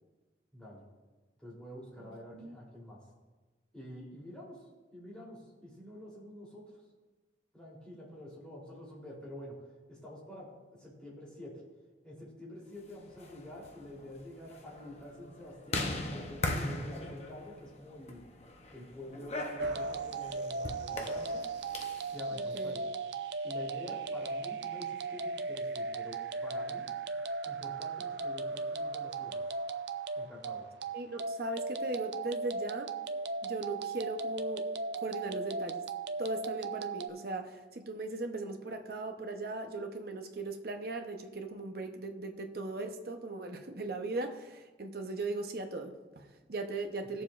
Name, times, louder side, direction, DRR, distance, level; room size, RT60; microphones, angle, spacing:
voice 1, 0.5-0.8 1.4-3.0 3.7-4.6 4.9-6.6 7.5-9.5 9.9-11.6 12.0-18.2 18.7-21.4 22.1-22.8 23.4-26.9 27.4-29.4 30.1-30.7 47.1-47.2, left 1 dB, 5° left, -6 dB, 3.4 m, -48 dB
sound 1, 13.0-22.1, left 2 dB, 35° left, 0.8 m, -40 dB
sound 2, 19.6-37.1, right 3 dB, 75° right, 0.5 m, -37 dB
voice 2, 22.3-22.8 30.9-33.0 33.4-34.7 35.0-35.8 36.2-47.2, right 2 dB, 55° right, 5 dB, 0.9 m, -38 dB
18.0 x 7.1 x 2.5 m, 1.2 s
head